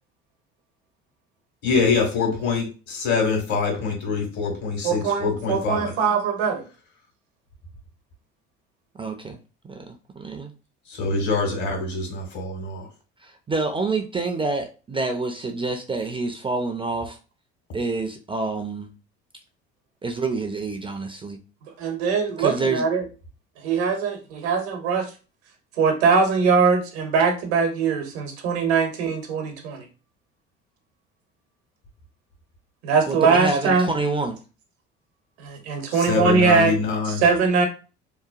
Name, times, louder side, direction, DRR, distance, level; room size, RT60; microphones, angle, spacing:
voice 1, 1.6-5.9 10.9-12.9 35.9-37.2, left 4 dB, 65° left, 1 dB, 1.5 m, -24 dB
voice 2, 4.8-6.6 21.8-23.0 23.6-25.1 25.8-29.8 32.8-33.9 35.4-36.8 37.2-37.7, right 5 dB, 80° right, 5 dB, 0.8 m, -21 dB
voice 3, 8.9-9.4 9.6-10.5 13.2-17.2 17.7-18.9 20.0-21.4 22.4-22.9 33.1-34.4, right 3 dB, 15° right, 5 dB, 0.4 m, -27 dB
2.9 x 2.1 x 2.4 m, 0.34 s
hypercardioid pair, 65°, 32 cm